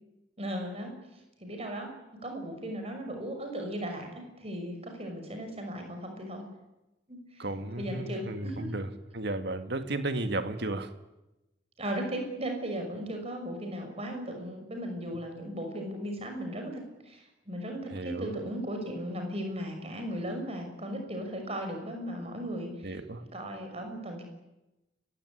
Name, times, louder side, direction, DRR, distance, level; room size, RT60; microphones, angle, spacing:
voice 1, 0.4-0.9 1.4-1.9 2.2-6.5 7.1-8.7 11.8-23.0 23.3-24.2, equal, 30° right, 4 dB, 6.0 m, -37 dB
voice 2, 7.4-8.9 9.1-10.9 17.9-18.3 22.8-23.2, right 2 dB, 60° right, 9 dB, 1.9 m, -33 dB
30.0 x 16.0 x 9.9 m, 0.99 s
head